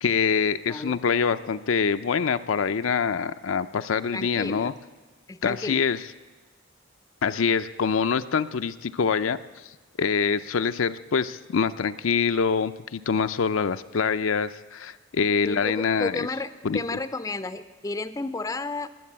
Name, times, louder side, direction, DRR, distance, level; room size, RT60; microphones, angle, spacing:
voice 1, 0.0-4.7 5.4-6.0 7.2-9.4 10.0-16.3 16.6-16.8, left 6 dB, 75° left, 10 dB, 0.5 m, -25 dB
voice 2, 0.7-1.0 4.1-4.7 5.3-5.8 15.4-18.9, left 3 dB, 15° left, 12 dB, 0.5 m, -32 dB
22.0 x 7.7 x 8.7 m, 1.3 s
head